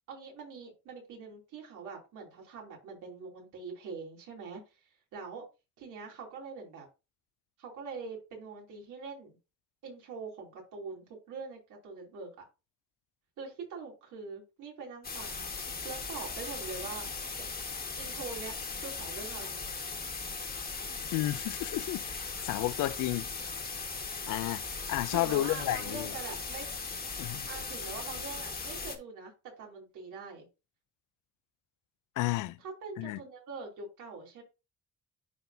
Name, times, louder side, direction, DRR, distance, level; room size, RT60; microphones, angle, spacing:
voice 1, 0.1-4.6 5.1-5.4 5.8-6.9 7.6-9.4 9.8-12.4 13.4-15.5 15.8-17.1 17.4-17.5 17.9-19.6 25.1-26.7 27.5-30.5 32.6-34.4, right 4 dB, 85° right, 3.1 m, -43 dB
sound 1, 15.0-29.0, left 4 dB, 30° left, 1.7 m, -38 dB
voice 2, 21.1-23.3 24.3-24.6 24.9-26.1 27.2-27.5 32.2-32.6 33.0-33.2, left 16 dB, 85° left, 0.5 m, -32 dB
11.0 x 4.1 x 2.7 m
cardioid pair, 90°, 30 cm